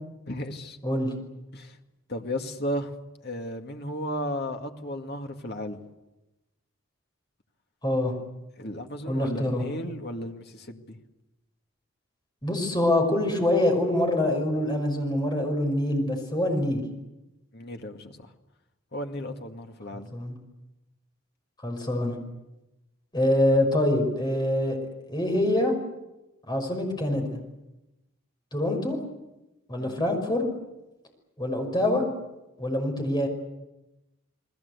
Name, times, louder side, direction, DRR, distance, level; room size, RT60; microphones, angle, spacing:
voice 1, 0.3-0.8 1.5-1.8 2.1-2.9 3.2-5.8 8.6-11.0 17.5-18.3 18.9-20.1 29.7-30.0, equal, 50° left, 4 dB, 2.1 m, -34 dB
voice 2, 0.8-1.1 7.8-8.1 9.1-9.6 12.4-16.9 20.1-20.4 21.6-22.2 23.1-24.8 25.1-25.7 26.5-27.4 28.5-29.0 29.7-30.5 31.4-32.1 32.6-33.3, left 1 dB, 20° left, 3 dB, 5.7 m, -25 dB
30.0 x 20.0 x 8.3 m, 1.0 s
head